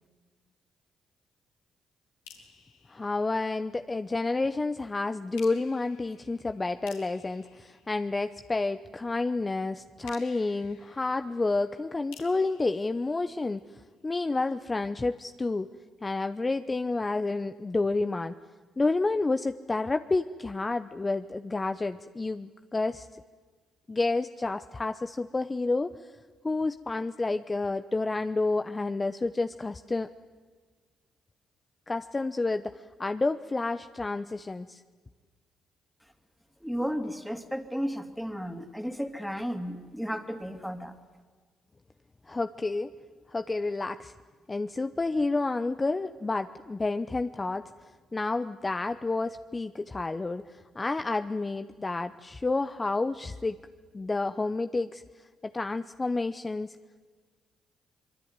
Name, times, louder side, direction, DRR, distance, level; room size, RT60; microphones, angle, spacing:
sound 1, 2.2-4.0 5.4-8.7 10.0-14.0, left 6 dB, 85° left, 4.0 m, -55 dB
voice 1, 2.9-13.6 14.0-15.7 16.0-18.3 18.8-23.2 23.9-26.1 26.4-30.1 31.9-34.8 42.3-42.9 43.3-44.1 44.5-47.7 48.1-53.6 53.9-55.0 55.4-56.8, left 3 dB, 30° left, 10 dB, 0.9 m, -30 dB
voice 2, 36.6-40.9, equal, ahead, 6 dB, 3.0 m, -33 dB
24.5 x 23.0 x 9.7 m, 1.5 s
hypercardioid pair, 50°, 0 cm